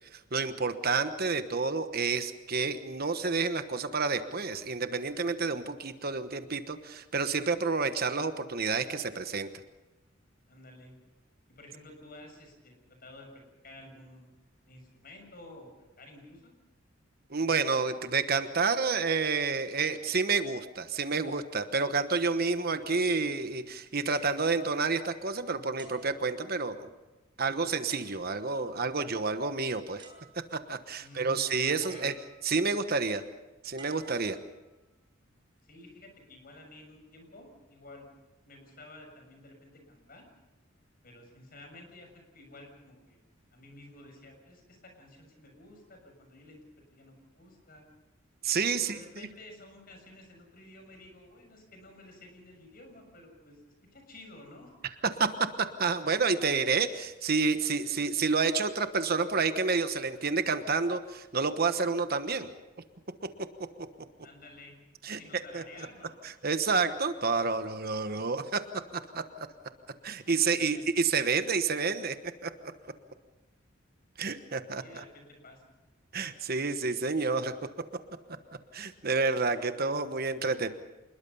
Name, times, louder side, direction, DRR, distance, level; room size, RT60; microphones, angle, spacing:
voice 1, 0.1-9.5 17.3-26.9 27.4-30.0 30.5-32.1 32.4-33.2 33.6-34.4 48.4-49.0 55.2-55.3 55.6-62.5 65.0-65.2 65.5-65.6 66.2-68.6 69.1-69.2 70.0-72.2 72.4-72.7 74.2-75.0 76.1-77.5 78.7-80.7, right 4 dB, 50° right, 9 dB, 1.2 m, -29 dB
voice 2, 10.4-11.0 11.5-12.7 13.0-14.3 14.7-16.5 31.0-32.1 35.6-38.1 38.4-40.3 41.0-43.2 43.5-47.9 48.7-53.6 53.9-54.7 64.2-64.7 65.0-66.2 70.4-70.8 74.8-75.8, left 2 dB, 45° left, 4 dB, 6.7 m, -52 dB
sound 1, 24.1-25.3 25.8-26.9 27.9-28.6 29.6-29.7 30.0-30.8 31.8-32.6 33.8-34.9 35.6-35.9, right 4 dB, 25° right, 4.8 m, -55 dB
27.0 x 21.0 x 5.6 m, 1.1 s
head